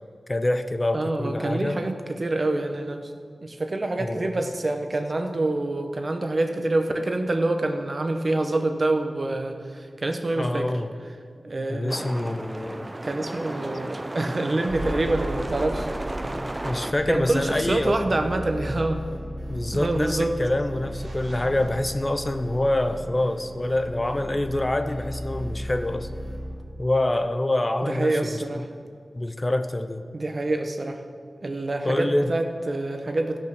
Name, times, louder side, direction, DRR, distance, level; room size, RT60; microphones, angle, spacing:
voice 1, 0.3-1.8 4.0-4.4 10.4-10.9 11.7-13.0 16.6-18.0 19.5-26.1 26.8-28.6 29.1-30.0 31.8-32.3, left 1 dB, 30° left, 9 dB, 0.7 m, -26 dB
voice 2, 0.9-3.0 3.4-10.7 11.4-12.0 12.6-12.7 13.0-15.9 17.1-19.0 19.7-20.3 27.9-28.7 30.1-31.0 31.4-33.4, right 2 dB, 50° right, 5 dB, 1.0 m, -26 dB
sound 1, 11.9-16.9, right 1 dB, 25° right, 0.5 m, -34 dB
sound 2, 14.7-26.6, equal, 70° right, 2.6 m, -35 dB
14.5 x 6.4 x 6.0 m, 2.2 s
wide cardioid pair, 60°, 0 cm